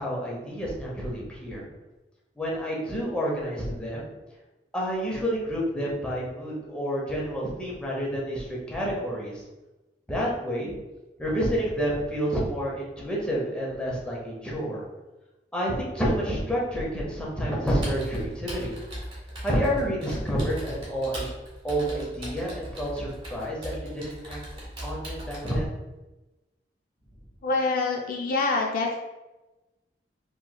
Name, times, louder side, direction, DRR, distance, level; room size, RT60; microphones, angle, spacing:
voice 1, 0.0-1.7 2.4-4.1 4.7-9.4 10.1-10.7 11.2-14.8 15.5-18.7 19.4-21.3 21.6-24.4 24.8-25.7, equal, 5° left, -5 dB, 0.7 m, -29 dB
Computer keyboard, 17.7-25.6, equal, 30° right, 1.1 m, -39 dB
voice 2, 27.4-29.0, left 3 dB, 55° left, 0 dB, 0.3 m, -25 dB
3.0 x 2.9 x 2.2 m, 1.1 s
head